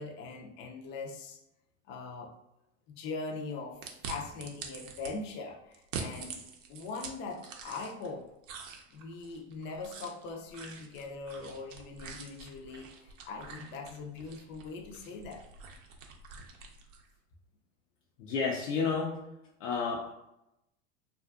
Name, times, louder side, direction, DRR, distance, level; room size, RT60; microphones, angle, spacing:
voice 1, 0.0-1.4 1.9-2.3 2.9-6.4 6.7-8.3 8.9-15.4, left 3 dB, 30° left, 2 dB, 0.4 m, -41 dB
sound 1, 3.8-5.1 5.7-8.1 8.4-17.1, right 5 dB, 80° right, 0.6 m, -45 dB
voice 2, 18.2-19.2 19.6-20.1, left 5 dB, 75° left, -1 dB, 0.5 m, -31 dB
2.4 x 2.3 x 2.4 m, 0.88 s
hypercardioid pair, 95°, 38 cm